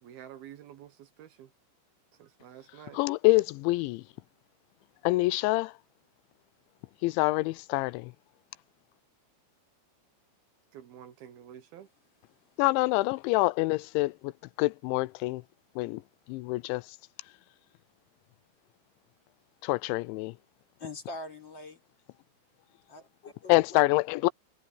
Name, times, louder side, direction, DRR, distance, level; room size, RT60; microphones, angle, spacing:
voice 1, 0.0-1.5 2.1-3.0 10.7-11.9, right 10 dB, 65° right, 2.7 m, -49 dB
voice 2, 2.9-4.0 5.0-5.7 7.0-8.1 12.6-14.3 14.6-15.4 15.8-16.0 16.3-16.8 19.6-20.3 23.5-24.3, left 21 dB, 85° left, 2.9 m, -26 dB
voice 3, 20.8-21.8 22.9-23.8, left 2 dB, 25° left, 4.3 m, -43 dB
omnidirectional pair, 5.3 m